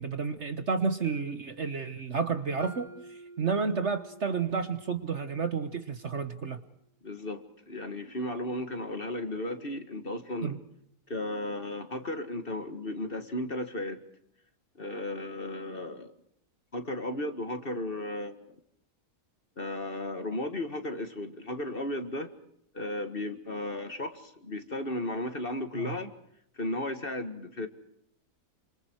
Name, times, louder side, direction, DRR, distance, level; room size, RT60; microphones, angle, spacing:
voice 1, 0.0-6.6 10.4-10.6 25.7-25.9, right 5 dB, 45° right, 1.4 m, -31 dB
Mallet percussion, 2.6-6.6, right 2 dB, 10° right, 2.3 m, -51 dB
voice 2, 7.0-10.6 11.1-14.0 14.8-16.1 16.7-18.5 19.6-22.3 22.7-26.1 26.6-27.7, left 1 dB, 35° left, 2.0 m, -35 dB
27.5 x 26.5 x 4.7 m
omnidirectional pair, 1.8 m